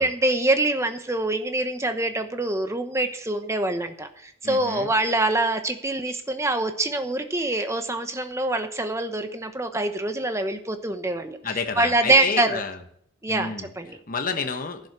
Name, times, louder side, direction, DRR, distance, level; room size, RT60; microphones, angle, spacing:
voice 1, 0.0-11.4 11.8-12.6 13.2-14.0, right 2 dB, 15° right, 7 dB, 1.0 m, -25 dB
voice 2, 4.4-4.9 11.4-12.8 13.3-14.9, left 5 dB, 40° left, 6 dB, 1.0 m, -30 dB
11.0 x 9.3 x 6.0 m, 0.67 s
head